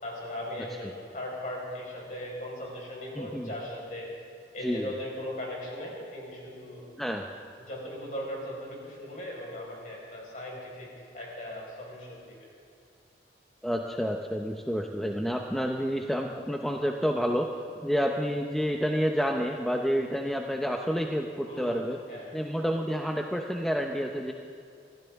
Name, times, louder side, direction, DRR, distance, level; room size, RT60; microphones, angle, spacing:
voice 1, 0.0-4.1 4.5-6.9 7.6-12.4 21.5-22.3, left 1 dB, 45° left, -3 dB, 4.8 m, -38 dB
voice 2, 3.1-3.5 4.6-4.9 7.0-7.3 13.6-22.0 22.3-24.3, equal, ahead, 2 dB, 0.6 m, -29 dB
24.5 x 16.0 x 3.6 m, 2.4 s
head